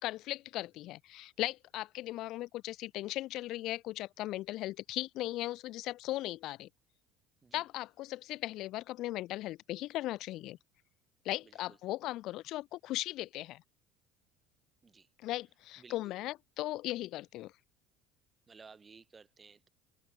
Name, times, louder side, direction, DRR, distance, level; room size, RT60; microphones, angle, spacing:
voice 1, 0.0-6.7 7.5-10.6 11.2-13.6 15.2-17.5, left 16 dB, 50° left, 1.3 m, -38 dB
voice 2, 15.8-16.1 18.5-19.7, right 5 dB, 15° right, 2.5 m, -56 dB
open air
cardioid pair, 155°, 0 cm